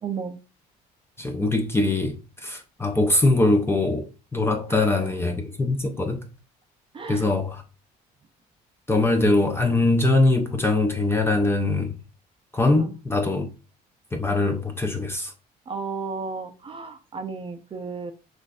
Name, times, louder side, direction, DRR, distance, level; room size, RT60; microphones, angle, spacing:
voice 1, 0.0-0.4 4.7-5.1 6.9-7.3 12.8-12.9 15.7-18.1, right 5 dB, 30° right, 0.6 m, -34 dB
voice 2, 1.2-6.3 7.1-7.6 8.9-12.0 12.5-13.5 14.1-15.3, left 2 dB, 15° left, 0.6 m, -22 dB
6.2 x 2.6 x 2.4 m
cardioid pair, 110°, 17 cm